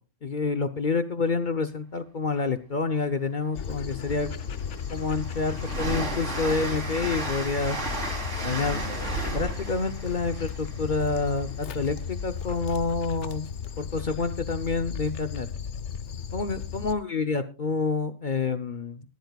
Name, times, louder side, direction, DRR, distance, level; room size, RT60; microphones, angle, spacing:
voice 1, 0.2-4.3 4.9-7.8 8.4-8.8 9.3-13.5 13.8-15.5 16.3-19.0, left 4 dB, 45° left, 10 dB, 0.8 m, -28 dB
Dog, 3.5-16.9, left 7 dB, 70° left, 1.1 m, -35 dB
Train, 3.6-3.7 4.1-11.8, right 2 dB, 70° right, 3.8 m, -34 dB
19.0 x 15.0 x 2.3 m, 0.29 s
omnidirectional pair, 1.3 m